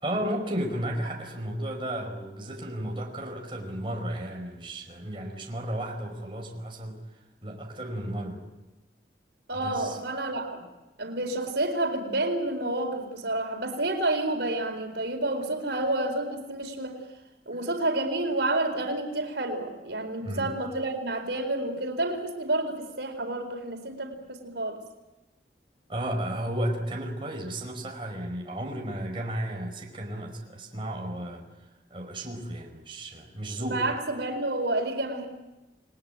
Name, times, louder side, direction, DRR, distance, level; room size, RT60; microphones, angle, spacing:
voice 1, 0.0-8.4 9.5-10.0 20.2-20.5 25.9-33.9, right 1 dB, 30° right, 1 dB, 5.0 m, -34 dB
voice 2, 9.5-10.6 11.0-17.0 17.5-24.8 33.6-35.3, right 2 dB, 85° right, 5 dB, 4.3 m, -29 dB
29.5 x 20.0 x 9.0 m, 1.0 s
head